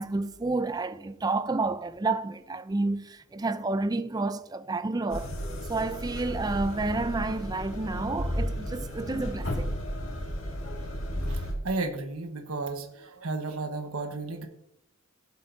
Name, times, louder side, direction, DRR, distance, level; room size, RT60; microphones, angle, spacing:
voice 1, 0.0-5.3 5.6-9.7, right 3 dB, 20° right, 0.4 m, -30 dB
sound 1, 5.1-11.5, equal, 70° left, 1.9 m, -33 dB
voice 2, 10.8-14.5, right 3 dB, 85° right, 1.2 m, -34 dB
16.5 x 7.4 x 2.6 m
head